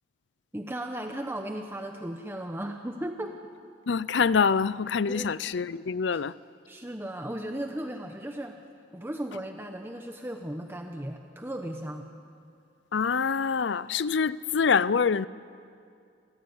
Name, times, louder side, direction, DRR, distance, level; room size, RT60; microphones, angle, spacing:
voice 1, 0.5-3.4 5.1-5.3 6.1-6.2 6.7-8.6 8.9-12.1, right 1 dB, 10° right, 0.9 m, -36 dB
voice 2, 3.9-6.3 12.9-15.3, left 5 dB, 70° left, 0.5 m, -25 dB
28.0 x 14.5 x 9.5 m
head